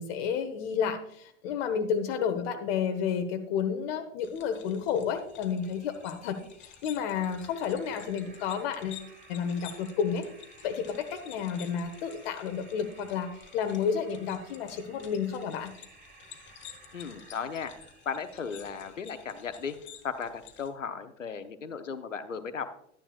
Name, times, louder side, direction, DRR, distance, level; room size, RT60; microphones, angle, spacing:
voice 1, 0.0-10.3 10.6-15.7, left 7 dB, 55° left, 5 dB, 1.1 m, -31 dB
sound 1, 4.2-20.7, left 9 dB, 30° left, 1.2 m, -52 dB
sound 2, 5.1-19.7, right 4 dB, 25° right, 2.3 m, -57 dB
voice 2, 16.9-17.7 18.0-19.8 20.0-22.7, left 6 dB, 85° left, 10 dB, 0.9 m, -36 dB
12.0 x 9.9 x 2.4 m, 0.69 s
figure-of-eight pair, 90°, 37 cm